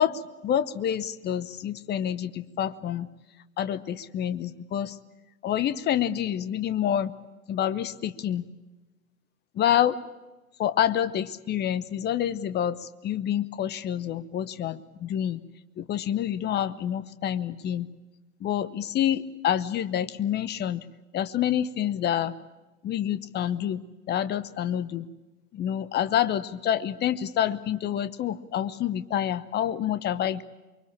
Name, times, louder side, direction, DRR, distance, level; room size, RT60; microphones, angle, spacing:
voice 1, 0.0-3.1 3.6-5.0 5.4-7.1 7.5-8.4 9.5-10.0 10.6-15.4 15.8-17.9 18.4-20.8 21.1-22.3 22.8-23.8 24.1-25.1 25.5-30.4, left 10 dB, 20° left, 15 dB, 0.9 m, -27 dB
24.0 x 23.5 x 8.7 m, 1.1 s
figure-of-eight pair, 90°, 47 cm